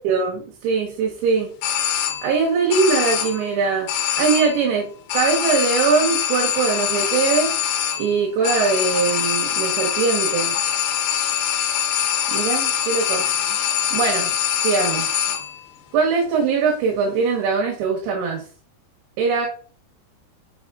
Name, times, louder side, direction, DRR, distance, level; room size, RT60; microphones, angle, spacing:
voice 1, 0.0-1.5 2.2-3.9 4.2-4.9 5.1-7.5 8.0-10.6 12.3-13.3 13.9-14.4 14.6-15.1 15.9-18.4 19.2-19.5, right 5 dB, 80° right, -2 dB, 3.7 m, -21 dB
sound 1, 1.6-2.4 2.7-3.5 3.9-4.7 5.1-15.6, left 9 dB, 75° left, 3.1 m, -23 dB
6.5 x 6.1 x 3.6 m, 0.42 s
omnidirectional pair, 5.1 m